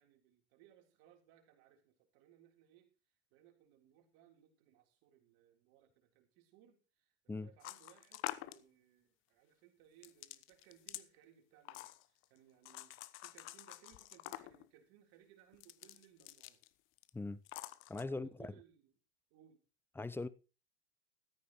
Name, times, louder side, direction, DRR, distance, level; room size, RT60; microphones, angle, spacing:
voice 1, 0.0-2.9 3.3-16.6 18.1-18.9 19.3-19.6, right 11 dB, 50° right, 3.7 m, -65 dB
sound 1, 7.6-8.6 10.0-11.1 11.7-12.2 12.7-14.7 15.5-16.7 17.0-17.1 17.5-18.0, left 17 dB, 40° left, 0.9 m, -47 dB
voice 2, 17.9-18.5 20.0-20.3, left 3 dB, 5° left, 0.7 m, -40 dB
15.0 x 13.5 x 3.1 m
figure-of-eight pair, 90°, 33 cm